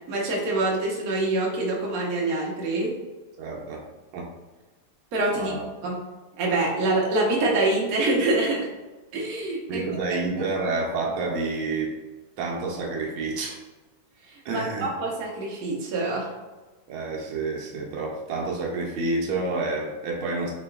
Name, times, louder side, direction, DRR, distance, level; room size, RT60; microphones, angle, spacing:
voice 1, 0.1-2.9 5.1-5.5 5.8-6.0 6.4-8.7 9.1-9.8 14.3-16.3, right 2 dB, 60° right, -3 dB, 1.1 m, -25 dB
voice 2, 3.4-3.8 4.1-4.3 5.3-5.6 9.7-11.9 12.4-13.6 14.4-14.9 16.9-20.5, right 3 dB, 85° right, -2 dB, 1.5 m, -29 dB
4.6 x 2.8 x 2.3 m, 1.2 s
omnidirectional pair, 2.2 m